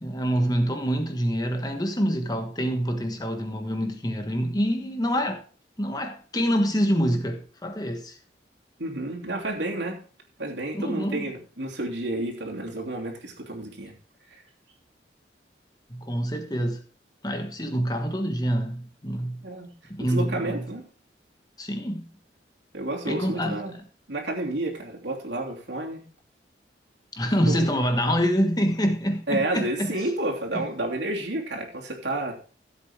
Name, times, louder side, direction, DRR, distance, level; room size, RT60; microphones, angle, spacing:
voice 1, 0.0-5.4 5.8-8.2 10.7-11.3 15.9-16.8 17.2-19.4 19.9-20.7 21.6-22.1 23.0-23.8 27.1-30.1 30.5-30.6, equal, 20° left, 1.3 m, -26 dB
voice 2, 8.8-10.0 10.4-13.9 14.3-14.4 19.4-19.7 20.0-20.8 22.7-23.7 24.1-26.0 27.5-27.7 29.3-32.4, right 1 dB, 80° right, 3.0 m, -30 dB
14.5 x 8.0 x 3.6 m
head